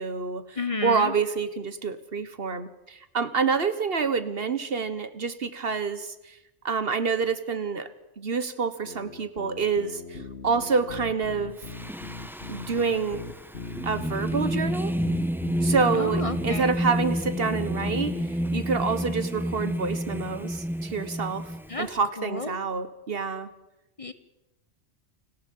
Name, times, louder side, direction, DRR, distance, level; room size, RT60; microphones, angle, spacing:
voice 1, 0.0-6.4 6.6-7.9 8.2-11.6 12.5-13.2 13.8-15.0 15.6-18.3 18.5-21.4 21.8-23.5, right 5 dB, 60° right, 12 dB, 1.4 m, -27 dB
voice 2, 0.6-1.1 15.9-16.7 21.7-22.6 24.0-24.1, left 3 dB, 30° left, 11 dB, 1.2 m, -32 dB
sound 1, 8.8-18.8, left 3 dB, 70° left, 2.1 m, -40 dB
Singing, 11.6-22.0, equal, ahead, 0.9 m, -30 dB
29.0 x 19.5 x 5.5 m, 0.96 s
omnidirectional pair, 1.2 m